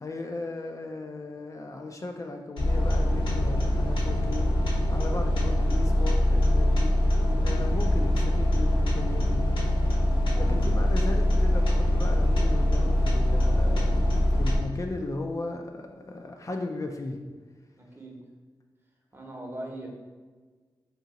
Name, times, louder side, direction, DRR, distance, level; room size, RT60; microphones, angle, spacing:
voice 1, 0.0-9.4 10.4-14.0 14.3-17.2, left 2 dB, 40° left, 3 dB, 0.3 m, -36 dB
sound 1, 2.6-14.6, left 1 dB, 75° left, 0.9 m, -23 dB
voice 2, 7.2-8.0 10.3-10.8 17.8-18.2 19.1-19.9, right 1 dB, 25° right, -1 dB, 0.8 m, -41 dB
2.8 x 2.7 x 3.8 m, 1.4 s
cardioid pair, 60°, 9 cm